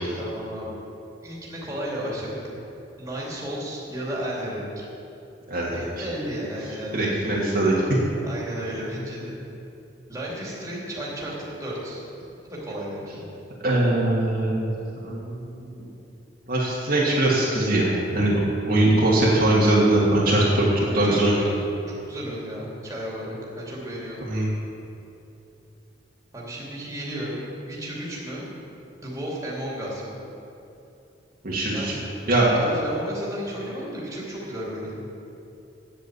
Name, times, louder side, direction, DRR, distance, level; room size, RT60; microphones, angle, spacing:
voice 1, 0.1-0.8 1.2-2.4 3.0-4.8 5.7-7.2 8.2-9.4 10.1-12.0 12.5-13.3 20.9-21.5 22.1-24.3 26.3-28.4 29.0-30.2 31.7-32.0 32.5-35.0, equal, 15° right, -6 dB, 2.7 m, -33 dB
voice 2, 6.9-7.8 13.6-14.7 15.0-15.5 15.8-15.9 16.5-18.4 18.7-21.3 24.3-24.5 31.4-31.9 32.3-32.5, right 1 dB, 50° right, -6 dB, 1.9 m, -21 dB
9.1 x 8.1 x 8.0 m, 2.8 s
head